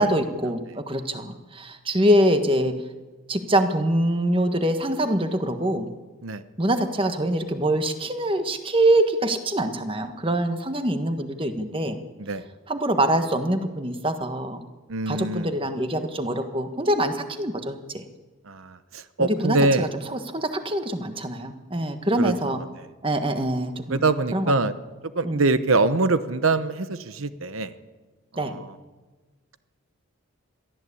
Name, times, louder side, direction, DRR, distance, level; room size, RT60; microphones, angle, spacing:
voice 1, 0.0-2.8 3.3-5.9 6.6-12.0 12.7-14.6 15.1-18.0 19.2-22.6 23.0-24.0 24.3-24.5 25.2-25.5 28.4-28.5, right 1 dB, 25° right, 7 dB, 1.4 m, -24 dB
voice 2, 14.9-15.5 18.4-19.9 22.2-22.7 23.9-24.7 25.1-27.7 28.3-28.7, right 3 dB, 80° right, 12 dB, 0.9 m, -24 dB
22.5 x 14.5 x 8.5 m, 1.3 s
head